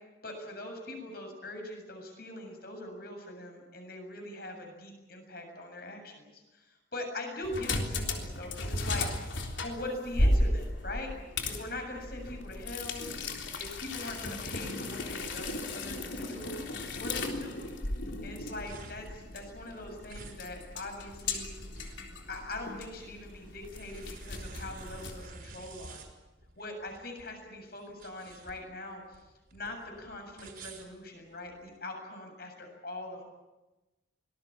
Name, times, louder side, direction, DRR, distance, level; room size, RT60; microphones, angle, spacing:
voice 1, 0.2-9.1 9.6-11.1 11.5-13.1 13.6-16.6 17.0-17.6 18.2-21.5 22.3-26.0 26.6-29.2 29.5-33.2, left 2 dB, 55° left, 4 dB, 7.4 m, -42 dB
sound 1, 7.4-25.3, left 1 dB, 75° left, 3.7 m, -35 dB
sound 2, 18.4-31.7, right 3 dB, 50° right, 5.2 m, -50 dB
24.5 x 20.0 x 8.8 m, 1.1 s
head